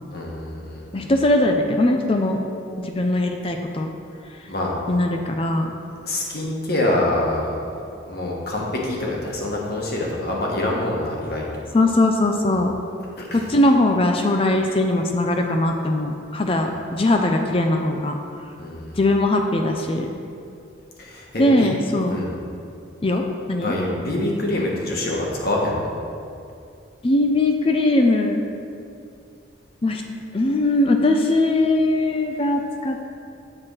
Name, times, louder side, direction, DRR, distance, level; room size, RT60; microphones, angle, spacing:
voice 1, 0.1-1.1 4.5-4.7 6.0-7.6 8.1-11.5 13.3-13.4 18.6-19.0 21.0-21.7 22.1-22.3 23.6-25.9, left 1 dB, 50° left, -2 dB, 1.4 m, -25 dB
voice 2, 0.9-2.4 2.8-3.9 4.9-5.7 11.7-12.7 13.3-18.2 19.0-20.1 21.4-22.2 23.0-23.7 27.0-28.4 29.8-30.0 30.3-33.1, left 1 dB, 30° left, 3 dB, 0.4 m, -20 dB
7.7 x 4.4 x 6.4 m, 2.5 s
head